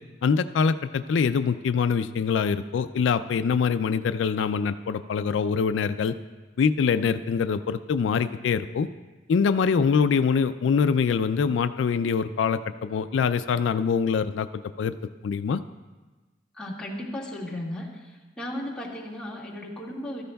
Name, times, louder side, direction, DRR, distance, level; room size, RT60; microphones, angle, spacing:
voice 1, 0.2-6.2 6.6-8.9 9.3-14.5 14.8-14.9 15.2-15.6, left 6 dB, 85° left, 12 dB, 0.4 m, -24 dB
voice 2, 16.5-17.9 18.4-20.2, left 1 dB, 5° left, -6 dB, 1.9 m, -35 dB
15.5 x 13.0 x 2.3 m, 1.2 s
head